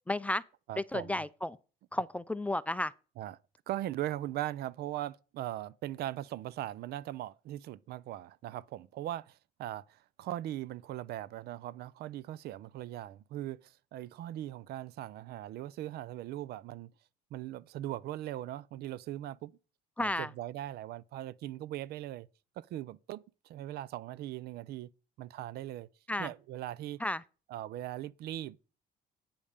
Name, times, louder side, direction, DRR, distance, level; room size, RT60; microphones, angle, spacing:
voice 1, 0.1-0.4 0.8-1.6 1.9-2.9 20.0-20.3 26.1-26.3 27.0-27.2, left 1 dB, 10° left, 0.4 m, -32 dB
voice 2, 0.7-1.2 3.2-3.4 3.7-16.9 17.3-19.6 20.0-22.3 22.6-24.9 25.2-25.9 26.2-27.0 27.5-28.6, right 13 dB, 70° right, 0.5 m, -40 dB
8.8 x 5.3 x 6.5 m
cardioid pair, 110°, 17 cm